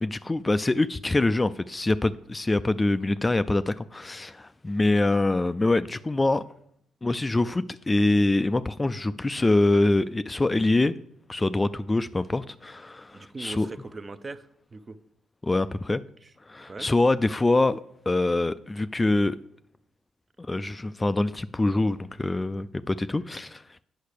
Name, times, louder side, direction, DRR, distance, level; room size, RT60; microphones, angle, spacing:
voice 1, 0.0-6.4 7.0-10.9 11.3-13.7 15.4-16.0 16.5-17.8 18.1-19.4 20.5-23.6, left 2 dB, 20° left, 0.3 m, -24 dB
voice 2, 13.1-15.0 16.2-16.3 16.7-16.9, right 3 dB, 30° right, 0.6 m, -40 dB
8.4 x 5.7 x 6.6 m
cardioid pair, 90°, 0 cm